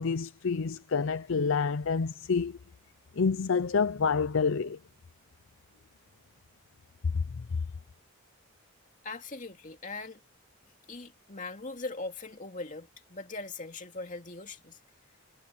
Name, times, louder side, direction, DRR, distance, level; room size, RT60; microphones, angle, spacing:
voice 1, 0.0-2.6 3.2-4.8, left 5 dB, 60° left, 0.5 m, -28 dB
voice 2, 9.0-10.2 10.9-14.8, left 3 dB, 35° left, 2.6 m, -40 dB
head